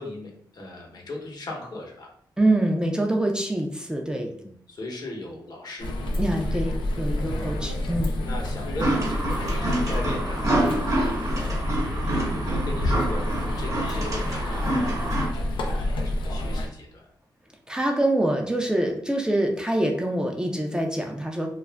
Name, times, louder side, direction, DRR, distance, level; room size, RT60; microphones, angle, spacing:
voice 1, 0.0-2.1 4.4-5.9 7.3-7.9 8.2-11.8 12.3-17.1, left 2 dB, 55° left, 0 dB, 0.9 m, -38 dB
voice 2, 2.4-4.3 6.2-8.1 17.7-21.5, right 1 dB, 10° right, 1 dB, 0.4 m, -25 dB
sound 1, 5.8-16.7, left 1 dB, 90° left, 0.4 m, -28 dB
sound 2, 8.8-15.3, right 1 dB, 40° right, 0.9 m, -27 dB
2.4 x 2.0 x 3.3 m, 0.65 s
cardioid pair, 65°, 8 cm